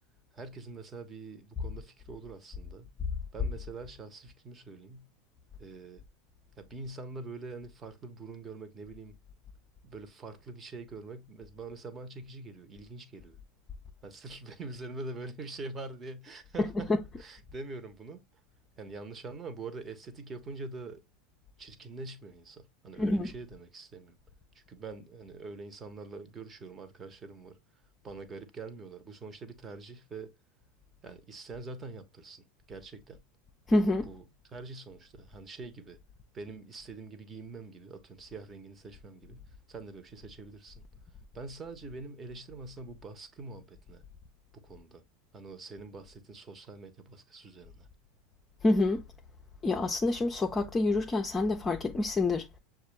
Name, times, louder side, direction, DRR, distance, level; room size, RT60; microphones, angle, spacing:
voice 1, 0.3-2.9 3.3-5.1 5.6-6.0 6.6-9.2 9.8-13.4 14.0-16.9 17.2-18.2 18.8-21.0 21.6-24.2 24.5-27.6 28.0-30.3 31.0-33.2 34.0-34.2 34.5-36.0 36.3-40.8 41.3-44.0 44.5-45.0 45.3-47.9, right 3 dB, 25° right, 1.1 m, -44 dB
voice 2, 16.6-17.0 23.0-23.3 33.7-34.1 48.6-49.0 49.6-52.5, left 2 dB, 20° left, 0.6 m, -27 dB
6.5 x 2.4 x 3.2 m
hypercardioid pair, 85°, 0 cm